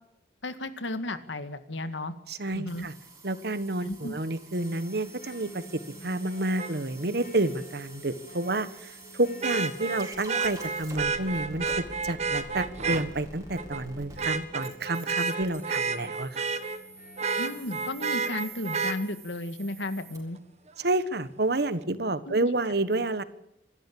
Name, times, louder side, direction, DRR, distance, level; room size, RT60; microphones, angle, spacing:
voice 1, 0.4-2.1 2.5-2.9 3.8-4.1 17.4-20.4 22.3-22.5, left 2 dB, 85° left, 11 dB, 2.0 m, -34 dB
voice 2, 2.3-2.9 3.2-16.5 20.8-23.2, right 2 dB, 60° right, 14 dB, 1.4 m, -29 dB
sound 1, 2.7-20.2, right 3 dB, 20° right, 4.7 m, -48 dB
sound 2, 4.6-19.1, left 1 dB, 45° left, 7.3 m, -51 dB
Vehicle horn car horn honking, 6.6-6.7 9.4-13.0 13.6-13.8 14.2-16.8 17.2-19.0 20.8-20.9, right 5 dB, 40° right, 1.5 m, -30 dB
26.0 x 13.0 x 8.7 m, 0.85 s
head